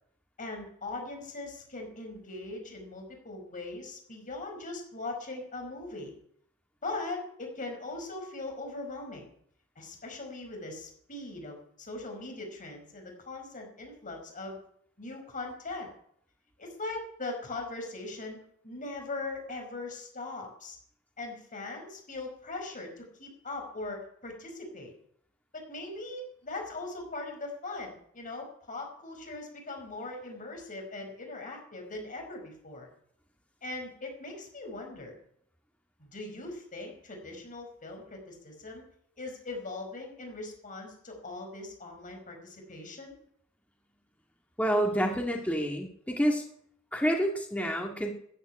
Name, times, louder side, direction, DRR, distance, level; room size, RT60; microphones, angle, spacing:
voice 1, 0.4-6.1 6.8-9.3 9.7-14.6 15.0-15.9 16.6-18.4 18.6-20.8 21.2-24.9 25.5-32.9 33.6-35.2 36.0-38.8 39.2-43.1, left 2 dB, 35° left, 2 dB, 5.0 m, -40 dB
voice 2, 44.6-46.4 46.9-48.1, equal, 5° left, 1 dB, 1.9 m, -28 dB
14.0 x 9.8 x 9.5 m, 0.67 s
head